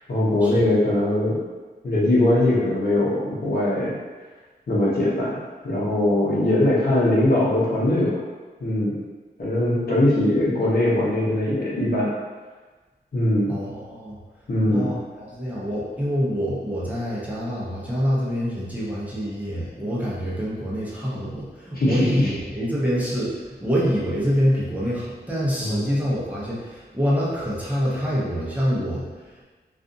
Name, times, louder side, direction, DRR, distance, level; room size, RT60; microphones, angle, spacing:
voice 1, 0.1-1.4 1.8-4.0 4.7-5.4 5.6-8.1 8.6-9.0 9.4-12.1 13.1-13.5 14.5-14.9 21.7-22.3 25.6-25.8, left 1 dB, 55° left, -7 dB, 0.8 m, -21 dB
voice 2, 13.5-14.2 14.6-29.3, equal, 10° right, -8 dB, 0.8 m, -26 dB
2.5 x 2.4 x 2.5 m, 1.3 s
wide cardioid pair, 75°, 18 cm